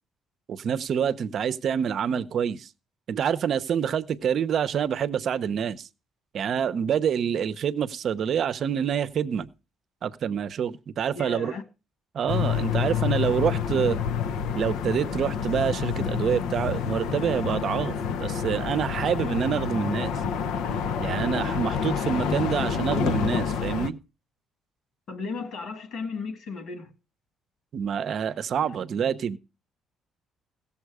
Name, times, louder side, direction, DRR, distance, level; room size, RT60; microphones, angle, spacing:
voice 1, 0.5-2.7 3.1-5.9 6.3-9.5 10.0-11.5 12.1-14.0 14.5-20.1 21.0-24.0 27.7-29.4, right 8 dB, 50° right, 0.7 m, -27 dB
voice 2, 11.1-11.6 25.1-26.9, left 4 dB, 60° left, 2.1 m, -35 dB
sound 1, 12.3-23.9, left 7 dB, 80° left, 0.7 m, -28 dB
16.5 x 7.2 x 4.8 m
cardioid pair, 140°, 0 cm